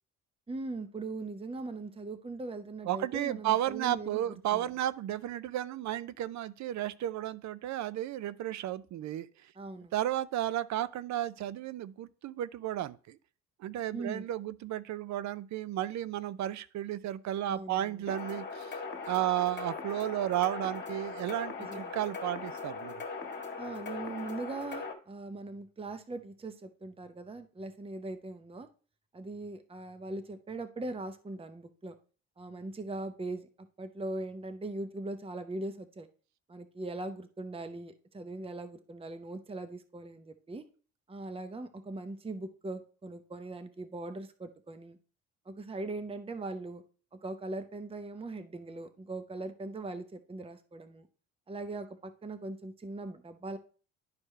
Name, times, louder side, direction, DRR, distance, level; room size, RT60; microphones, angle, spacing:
voice 1, 0.5-4.2 4.5-4.7 9.6-9.9 13.9-14.3 17.5-18.0 21.6-21.9 23.6-28.7 29.1-31.9 32.4-36.1 36.5-40.7 41.1-45.0 45.5-46.8 47.1-51.1 51.5-53.6, right 2 dB, 15° right, 0.8 m, -40 dB
voice 2, 2.9-9.3 9.9-13.2 13.6-18.8 19.1-22.9, right 13 dB, 55° right, 0.6 m, -33 dB
sound 1, 18.1-24.9, left 4 dB, 30° left, 1.8 m, -40 dB
11.5 x 4.5 x 3.2 m
hypercardioid pair, 60°, 34 cm